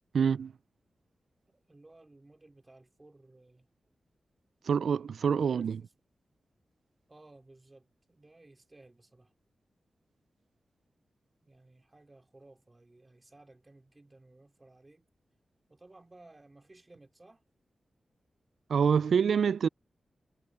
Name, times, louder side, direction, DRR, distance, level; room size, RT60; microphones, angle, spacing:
voice 1, 0.1-0.5 4.7-5.8 18.7-19.7, right 6 dB, 85° right, 0.3 m, -26 dB
voice 2, 1.5-3.7 5.4-5.9 7.1-9.3 11.4-15.1 15.7-17.4, right 2 dB, 20° right, 3.7 m, -57 dB
wide cardioid pair, 160°, 0 cm